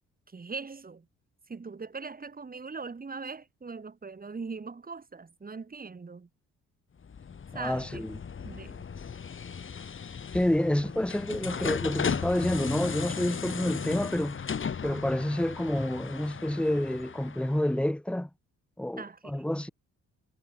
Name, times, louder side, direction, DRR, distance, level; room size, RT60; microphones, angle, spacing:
voice 1, 0.3-1.0 1.5-6.3 7.5-8.2 8.4-8.9 19.0-19.5, right 4 dB, 30° right, 4.5 m, -41 dB
sound 1, 7.0-17.7, left 6 dB, 45° left, 3.0 m, -36 dB
voice 2, 7.5-8.2 10.3-14.4 14.8-18.3 18.8-19.7, left 1 dB, 5° left, 2.1 m, -28 dB
cardioid pair, 80°, 29 cm